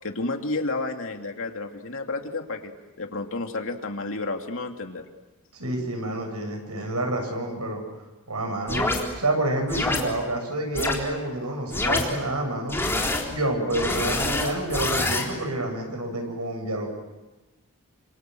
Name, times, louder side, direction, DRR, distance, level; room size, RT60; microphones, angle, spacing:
voice 1, 0.0-2.7 3.0-5.0, left 3 dB, 65° left, 4 dB, 2.8 m, -31 dB
voice 2, 5.5-7.8 8.3-8.9 9.2-12.8 13.3-17.0, right 1 dB, 85° right, 3 dB, 7.3 m, -28 dB
sound 1, 8.7-9.0 9.7-10.0 10.7-10.9 11.7-12.0 12.7-13.2 13.7-15.2, left 2 dB, 10° left, 3.9 m, -25 dB
28.0 x 26.5 x 7.8 m, 1.1 s
head